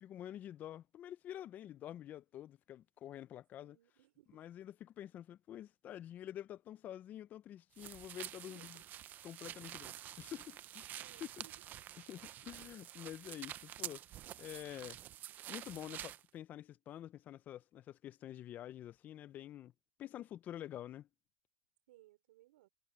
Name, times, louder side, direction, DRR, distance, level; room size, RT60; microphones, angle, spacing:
voice 1, 0.0-3.8 4.3-8.8 9.2-10.9 11.4-11.5 12.0-14.0 14.4-15.0 15.5-19.7 20.0-21.1, left 11 dB, 30° left, 0.6 m, -48 dB
voice 2, 3.6-4.4 7.9-8.0 8.4-8.8 11.0-11.5 21.9-22.7, right 17 dB, 75° right, 3.9 m, -64 dB
sound 1, 7.8-16.2, right 12 dB, 35° right, 0.8 m, -48 dB
supercardioid pair, 140°, 5 cm